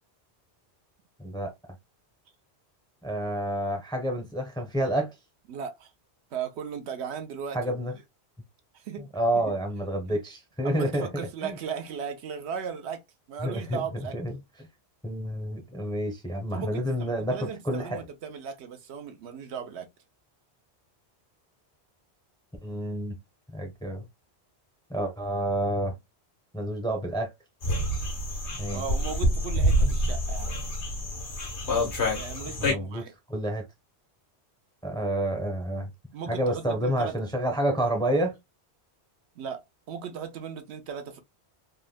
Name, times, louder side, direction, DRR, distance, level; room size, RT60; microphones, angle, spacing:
voice 1, 1.2-1.5 3.0-5.1 7.5-7.9 9.1-11.6 13.4-13.8 14.1-14.3 15.0-18.0 22.6-23.2 23.5-24.0 24.9-26.0 26.5-27.3 28.5-28.8 32.6-33.6 34.8-35.9 36.3-38.3, right 1 dB, 5° left, 0.5 m, -29 dB
voice 2, 5.5-5.9 6.3-7.8 8.7-9.5 10.1-10.2 10.6-13.0 13.3-14.2 16.5-19.9 28.7-30.6 32.2-33.1 36.1-37.1 39.4-41.2, right 7 dB, 80° right, 0.9 m, -37 dB
sound 1, 27.6-32.7, equal, 90° left, 1.4 m, -27 dB
3.5 x 2.1 x 2.2 m
omnidirectional pair, 1.1 m